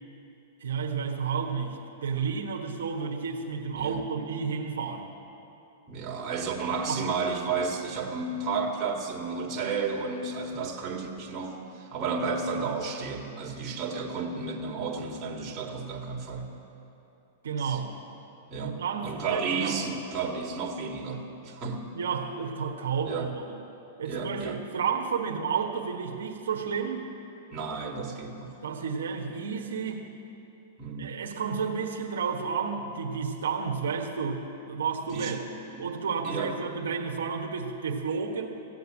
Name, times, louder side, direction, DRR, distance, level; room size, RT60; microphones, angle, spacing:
voice 1, 0.6-5.1 6.9-7.1 17.4-17.9 18.6-19.8 21.9-23.6 24.0-27.1 28.6-30.1 31.0-35.4 35.7-38.5, right 6 dB, 85° right, 1 dB, 1.3 m, -31 dB
voice 2, 5.9-16.5 17.6-17.8 18.5-21.9 23.1-23.3 24.0-24.6 27.5-28.5 30.8-31.2 35.1-35.4 35.7-35.8 36.2-36.5, right 4 dB, 30° right, 0 dB, 2.0 m, -32 dB
16.0 x 8.0 x 8.8 m, 2.9 s
hypercardioid pair, 130°, 0 cm